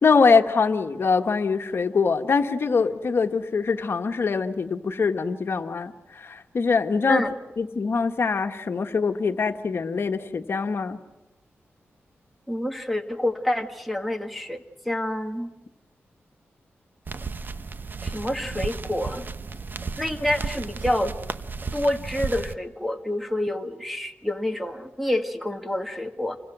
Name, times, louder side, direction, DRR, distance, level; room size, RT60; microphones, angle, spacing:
voice 1, 0.0-7.2 7.6-11.0, left 5 dB, 60° left, 6 dB, 1.6 m, -23 dB
voice 2, 12.5-15.5 18.0-19.3 20.0-21.2 21.7-26.4, left 1 dB, ahead, 3 dB, 1.9 m, -27 dB
sound 1, 17.1-22.6, right 4 dB, 45° right, 1.0 m, -33 dB
29.5 x 24.5 x 6.2 m, 1.0 s
wide cardioid pair, 80°, 5 cm